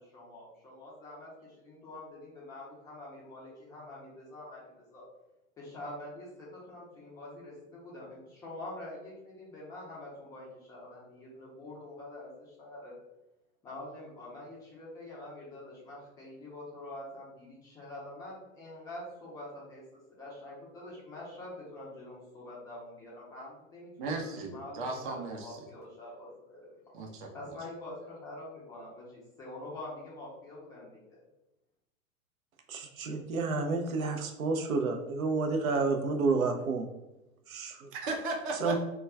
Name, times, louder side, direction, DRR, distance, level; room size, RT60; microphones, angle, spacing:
voice 1, 0.0-5.0 5.6-12.9 13.6-26.8 27.3-31.2, left 1 dB, 10° left, -6 dB, 0.4 m, -46 dB
voice 2, 24.0-25.6 26.9-27.3 37.9-38.8, right 3 dB, 40° right, 1 dB, 0.7 m, -36 dB
voice 3, 32.7-36.8 37.5-37.9 38.6-38.8, right 4 dB, 75° right, 4 dB, 0.6 m, -30 dB
2.2 x 2.2 x 3.3 m, 0.95 s
figure-of-eight pair, 100°, 41 cm